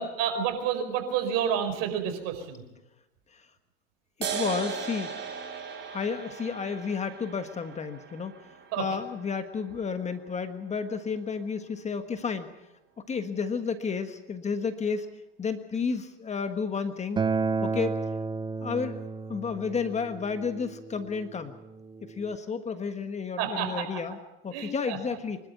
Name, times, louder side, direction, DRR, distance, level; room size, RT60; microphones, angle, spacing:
voice 1, 0.0-2.6 8.7-8.8 23.4-23.9 24.5-25.0, right 8 dB, 60° right, 6 dB, 4.9 m, -29 dB
voice 2, 4.2-5.2 5.9-8.3 8.8-12.5 13.1-15.1 15.4-17.2 17.6-18.0 18.6-19.0 19.3-21.6 22.0-24.2 24.4-25.4, left 5 dB, 25° left, 9 dB, 1.5 m, -31 dB
sound 1, 4.2-11.2, right 6 dB, 35° right, 4.2 m, -38 dB
Acoustic guitar, 17.2-22.4, right 4 dB, 15° right, 0.7 m, -32 dB
24.5 x 12.5 x 9.2 m, 0.93 s
hypercardioid pair, 100°, 30 cm